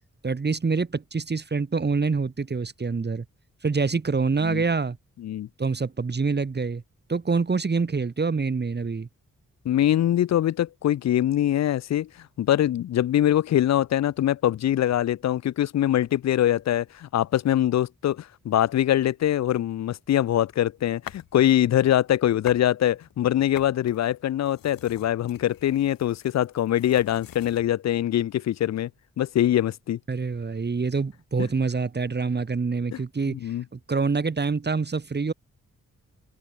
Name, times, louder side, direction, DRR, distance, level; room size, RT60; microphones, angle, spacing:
voice 1, 0.2-3.2 3.6-5.0 5.6-6.8 7.1-9.1 30.1-33.4 33.7-35.3, right 4 dB, 30° right, 1.0 m, -26 dB
voice 2, 9.7-28.9 29.2-30.0 31.4-31.5 32.9-33.0 33.3-33.6, left 12 dB, 55° left, 0.4 m, -23 dB
sound 1, 20.0-21.4 21.8-22.7 23.0-27.7, left 10 dB, 90° left, 1.2 m, -46 dB
cardioid pair, 50°, 33 cm